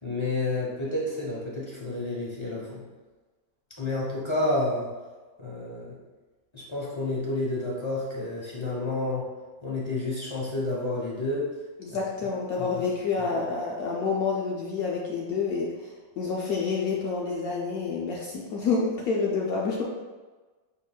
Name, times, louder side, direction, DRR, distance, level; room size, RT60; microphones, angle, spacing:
voice 1, 0.0-2.8 3.8-4.9 5.4-6.0 6.5-9.3 9.6-11.5 11.9-12.0 12.6-12.7 13.2-13.3, left 2 dB, 30° left, -6 dB, 0.5 m, -30 dB
voice 2, 11.8-19.8, left 4 dB, 70° left, -3 dB, 0.9 m, -28 dB
6.0 x 3.8 x 2.3 m, 1.3 s
omnidirectional pair, 2.0 m